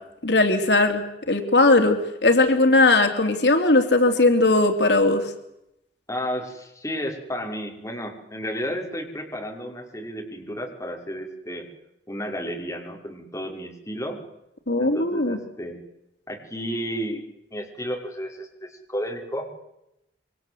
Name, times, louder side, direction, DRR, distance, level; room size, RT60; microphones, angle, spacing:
voice 1, 0.2-5.2 14.7-15.4, left 2 dB, 75° left, 5 dB, 3.2 m, -19 dB
voice 2, 6.1-11.7 12.1-14.2 14.8-15.8 16.3-17.2 17.5-19.5, equal, 15° left, 1 dB, 5.8 m, -32 dB
27.5 x 25.0 x 8.1 m, 0.84 s
head